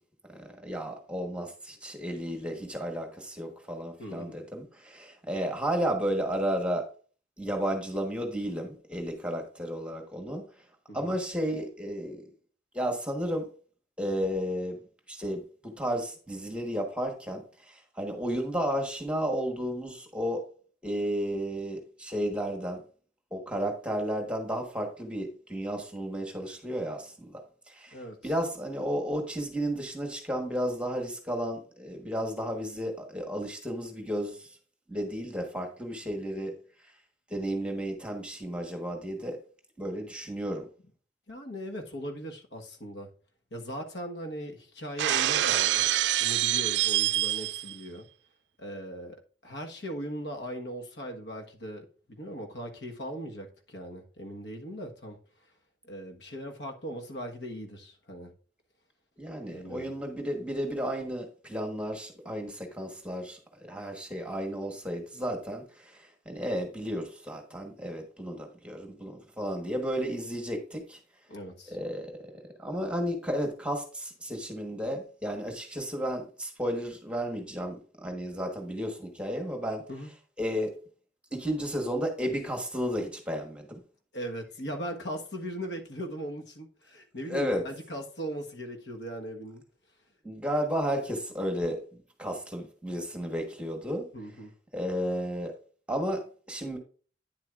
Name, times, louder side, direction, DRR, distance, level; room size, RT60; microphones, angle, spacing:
voice 1, 0.3-6.8 7.4-10.4 10.9-12.2 12.7-13.5 14.0-14.8 15.1-17.4 17.7-20.4 20.8-22.8 23.3-27.4 27.7-34.5 34.9-36.5 37.3-39.4 39.8-40.6 59.2-71.0 71.7-72.1 72.6-79.8 80.4-80.7 81.3-83.8 87.3-87.6 90.2-91.8 92.2-94.0 94.7-95.5 95.9-96.8, equal, 5° right, 1.3 m, -33 dB
voice 2, 4.0-4.3 10.9-11.2 27.9-28.2 41.3-43.1 43.5-45.9 46.2-48.1 48.6-55.2 55.8-58.3 59.5-59.9 71.3-71.8 79.9-80.1 84.1-89.6 94.1-94.5, equal, 75° left, 1.4 m, -39 dB
Shatter, 45.0-47.7, right 13 dB, 80° right, 0.3 m, -26 dB
9.5 x 7.5 x 2.5 m
head